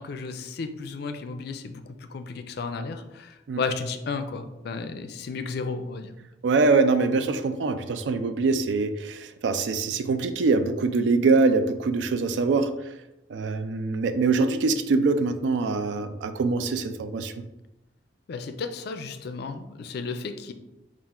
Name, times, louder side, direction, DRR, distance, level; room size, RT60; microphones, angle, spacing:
voice 1, 0.0-6.1 18.3-20.5, left 4 dB, 60° left, 8 dB, 0.4 m, -33 dB
voice 2, 6.4-12.7 13.3-17.3, right 3 dB, 90° right, 10 dB, 0.4 m, -23 dB
4.2 x 2.4 x 3.6 m, 0.97 s
head